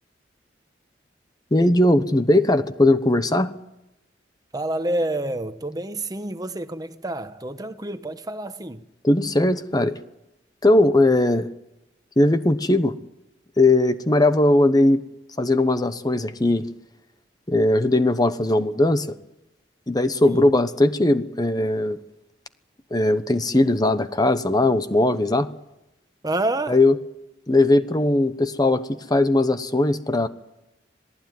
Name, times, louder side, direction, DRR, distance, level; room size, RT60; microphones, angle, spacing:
voice 1, 1.5-3.5 9.0-10.0 10.6-11.5 12.2-12.9 13.6-15.0 15.4-16.7 17.5-19.1 19.9-22.0 22.9-25.5 26.7-27.0 27.5-30.3, left 1 dB, 20° left, 1.0 m, -19 dB
voice 2, 4.5-8.8 20.2-20.4 26.2-26.8, right 1 dB, 20° right, 1.2 m, -28 dB
27.0 x 19.0 x 9.4 m
head